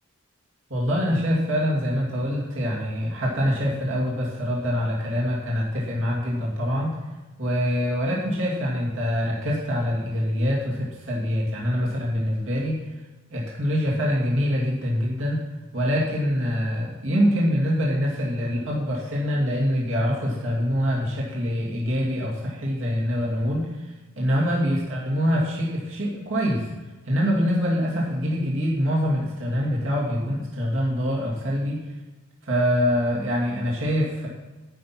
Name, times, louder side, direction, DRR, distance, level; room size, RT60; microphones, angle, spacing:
voice 1, 0.7-7.0 7.4-12.8 13.3-15.4 15.7-26.7 27.0-31.8 32.4-34.3, equal, 70° right, -4 dB, 2.5 m, -24 dB
10.5 x 6.0 x 8.6 m, 1.2 s
head